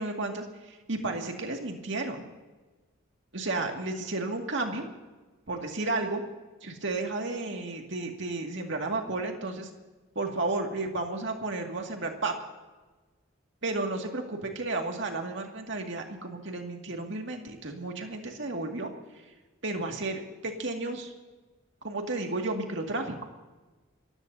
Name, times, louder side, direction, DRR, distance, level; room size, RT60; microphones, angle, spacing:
voice 1, 0.0-2.2 3.3-4.9 5.5-6.2 6.6-9.7 10.2-12.3 13.6-19.2 19.6-21.1 21.8-23.3, right 2 dB, 60° right, 2 dB, 2.2 m, -32 dB
29.5 x 15.5 x 2.8 m, 1.2 s
head